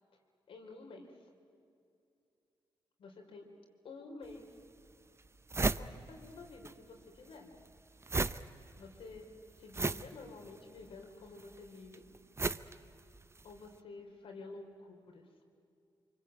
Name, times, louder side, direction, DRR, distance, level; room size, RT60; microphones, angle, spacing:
voice 1, 0.5-1.3 3.0-3.5 3.8-4.5 5.8-7.5 8.8-9.3 9.6-12.0 13.4-15.3, left 3 dB, 85° left, 2 dB, 4.0 m, -50 dB
sound 1, 4.3-4.4 4.9-5.0 5.2-6.8 7.0-13.6, right 3 dB, 30° right, 0.8 m, -36 dB
25.5 x 24.5 x 9.1 m, 2.5 s
cardioid pair, 65°, 9 cm